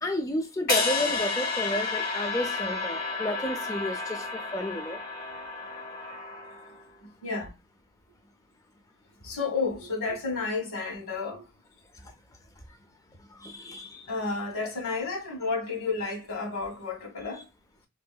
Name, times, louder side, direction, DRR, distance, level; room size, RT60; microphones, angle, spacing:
voice 1, 0.0-5.0 12.0-12.1 13.3-14.1, left 1 dB, 15° left, 0.4 m, -32 dB
sound 1, 0.7-6.8, left 3 dB, 45° left, 0.8 m, -31 dB
voice 2, 7.0-7.5 9.2-11.5 14.1-17.5, left 4 dB, 85° left, 1.2 m, -31 dB
3.1 x 2.7 x 2.2 m
head